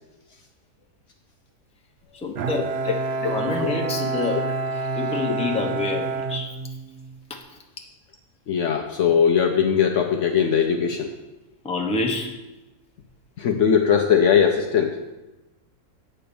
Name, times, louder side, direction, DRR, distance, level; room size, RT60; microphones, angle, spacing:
voice 1, 2.1-4.4 4.7-6.5 7.5-7.6 11.6-12.3, left 3 dB, 5° left, 1 dB, 0.7 m, -28 dB
Bowed string instrument, 2.4-7.2, right 4 dB, 65° right, 0.6 m, -28 dB
voice 2, 8.5-11.1 13.4-15.0, left 7 dB, 65° left, 3 dB, 0.8 m, -20 dB
8.6 x 4.3 x 6.9 m, 1.1 s
omnidirectional pair, 1.6 m